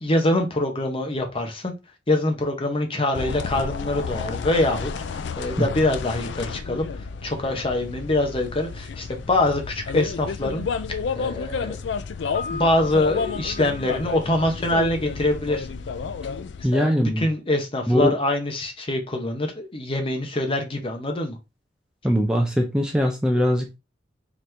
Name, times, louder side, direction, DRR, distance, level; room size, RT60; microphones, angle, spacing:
voice 1, 0.0-1.7 2.1-11.8 12.5-15.7 16.6-21.4, left 1 dB, 30° left, 0.8 m, -24 dB
sound 1, 3.1-16.7, left 5 dB, 70° left, 0.4 m, -31 dB
Piano, 12.3-15.2, left 3 dB, 45° left, 1.3 m, -39 dB
voice 2, 16.6-17.3 17.9-18.1 22.0-23.8, equal, 5° right, 0.5 m, -21 dB
4.0 x 3.0 x 3.3 m
head